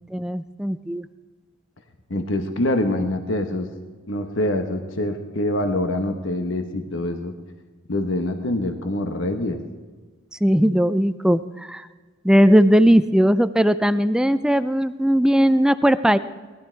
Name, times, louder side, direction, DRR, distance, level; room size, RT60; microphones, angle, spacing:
voice 1, 0.1-1.1 10.4-11.4 11.7-11.8 12.2-16.2, equal, 5° right, 12 dB, 0.4 m, -18 dB
voice 2, 2.1-3.7 4.1-7.3 7.9-9.6, left 1 dB, 65° left, 6 dB, 1.1 m, -25 dB
19.5 x 12.0 x 4.5 m, 1.4 s
head